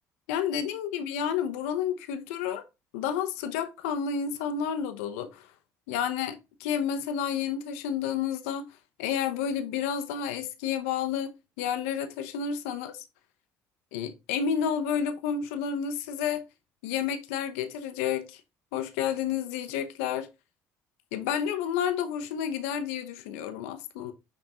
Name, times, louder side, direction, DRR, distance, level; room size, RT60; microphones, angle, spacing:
voice 1, 0.3-2.6 2.9-5.5 5.9-8.7 9.0-13.0 13.9-16.4 16.8-18.4 18.7-20.3 21.1-24.1, left 8 dB, 85° left, 0.8 m, -30 dB
6.1 x 3.7 x 4.2 m
hypercardioid pair, 65°, 7 cm